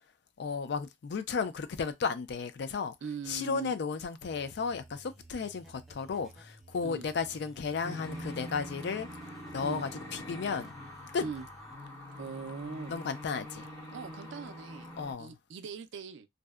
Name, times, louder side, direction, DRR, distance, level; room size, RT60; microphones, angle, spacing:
voice 1, 0.4-2.9 3.3-9.1 9.5-10.7 11.1-11.3 12.9-13.7 15.0-15.4, left 5 dB, 60° left, 0.4 m, -34 dB
voice 2, 3.0-3.7 6.8-7.1 9.6-9.8 11.2-11.5 12.2-13.0 13.9-14.9 15.2-16.3, right 5 dB, 65° right, 0.3 m, -41 dB
sound 1, 4.2-11.7, right 1 dB, ahead, 0.5 m, -55 dB
sound 2, 7.8-15.1, left 1 dB, 20° left, 0.9 m, -44 dB
2.6 x 2.1 x 2.2 m
head